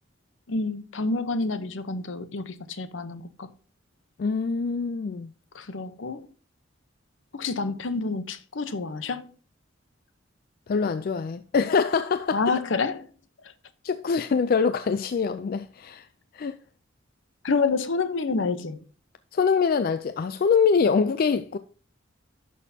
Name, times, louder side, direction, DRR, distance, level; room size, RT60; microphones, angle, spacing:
voice 1, 0.5-3.5 5.5-6.3 7.3-9.3 12.3-13.1 17.4-18.8, left 4 dB, 75° left, 0.8 m, -28 dB
voice 2, 4.2-5.3 10.7-12.4 13.8-16.1 16.3-16.6 19.3-21.6, left 5 dB, 50° left, 0.4 m, -24 dB
11.0 x 6.2 x 2.7 m
head